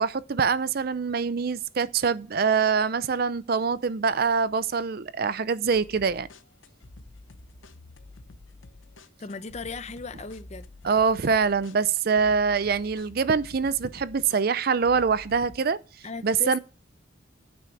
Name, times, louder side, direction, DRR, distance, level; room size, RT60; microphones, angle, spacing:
voice 1, 0.0-6.3 10.8-15.8 16.2-16.6, right 5 dB, 50° right, 0.5 m, -24 dB
sound 1, 5.7-15.6, left 2 dB, 80° left, 0.9 m, -49 dB
voice 2, 9.2-10.7 16.0-16.6, left 4 dB, 35° left, 0.6 m, -36 dB
9.2 x 6.2 x 7.1 m
head